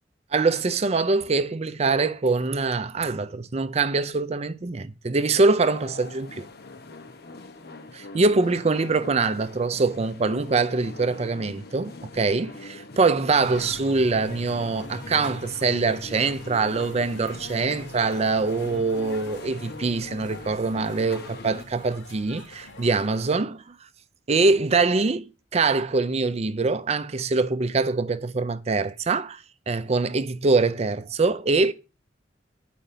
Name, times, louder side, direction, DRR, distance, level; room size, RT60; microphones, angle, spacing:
voice 1, 0.3-6.5 7.9-23.6 24.3-31.7, right 3 dB, 35° right, 0.5 m, -24 dB
sound 1, 5.6-21.6, left 3 dB, 60° left, 1.0 m, -43 dB
sound 2, 13.4-23.3, left 2 dB, 80° left, 2.5 m, -43 dB
10.5 x 5.0 x 6.7 m
head